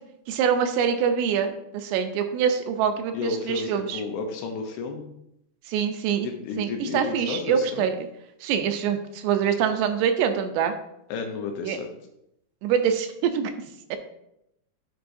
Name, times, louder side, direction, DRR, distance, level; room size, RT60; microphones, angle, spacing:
voice 1, 0.3-4.0 5.7-6.3 6.6-8.1 8.4-10.7 11.6-11.8 12.6-13.5 13.9-14.0, right 7 dB, 85° right, 7 dB, 2.6 m, -25 dB
voice 2, 3.1-5.0 6.2-7.9 11.1-11.9, left 4 dB, 80° left, 3 dB, 2.5 m, -32 dB
10.0 x 4.7 x 2.6 m, 0.81 s
omnidirectional pair, 4.9 m